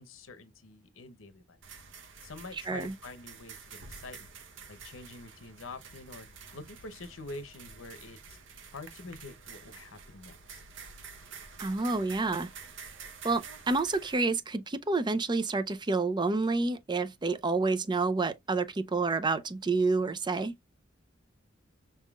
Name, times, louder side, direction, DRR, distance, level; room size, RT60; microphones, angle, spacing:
voice 1, 0.0-1.6 2.2-4.3 4.7-6.3 6.5-8.4 8.7-10.6, left 3 dB, 75° left, 0.8 m, -46 dB
sound 1, 1.6-14.1, right 5 dB, 65° right, 0.9 m, -49 dB
voice 2, 11.6-12.5 13.2-20.5, right 3 dB, 25° right, 0.5 m, -29 dB
5.4 x 3.6 x 2.3 m
head